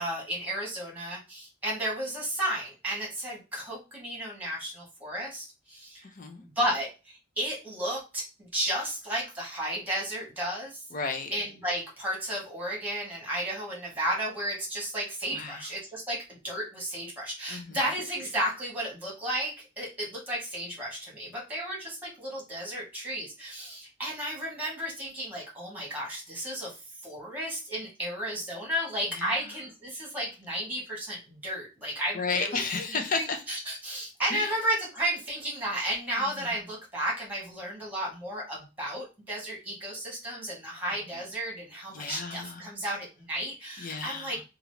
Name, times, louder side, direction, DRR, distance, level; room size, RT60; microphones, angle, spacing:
voice 1, 0.0-6.0 6.4-10.8 11.3-26.7 27.0-32.6 33.2-44.4, right 1 dB, 10° right, 1.4 m, -33 dB
voice 2, 6.0-6.4 10.9-11.3 15.3-15.7 17.5-17.8 29.1-29.4 32.1-33.4 34.3-34.5 36.2-36.5 41.1-41.2 41.9-42.7 43.8-44.4, left 4 dB, 45° left, 0.6 m, -33 dB
2.9 x 2.5 x 3.1 m
head